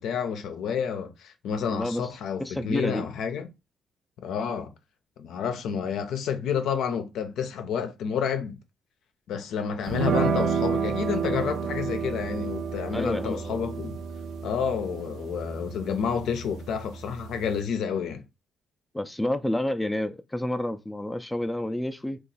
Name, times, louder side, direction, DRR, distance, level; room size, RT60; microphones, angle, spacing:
voice 1, 0.0-3.5 4.2-4.7 5.2-8.6 9.3-14.0 14.4-18.2, left 7 dB, 80° left, 0.5 m, -29 dB
voice 2, 1.7-2.1 2.4-3.0 12.9-13.6 18.9-22.2, left 1 dB, 10° left, 0.4 m, -29 dB
sound 1, 9.9-17.6, right 6 dB, 80° right, 0.6 m, -31 dB
2.9 x 2.4 x 3.9 m
cardioid pair, 90°, 0 cm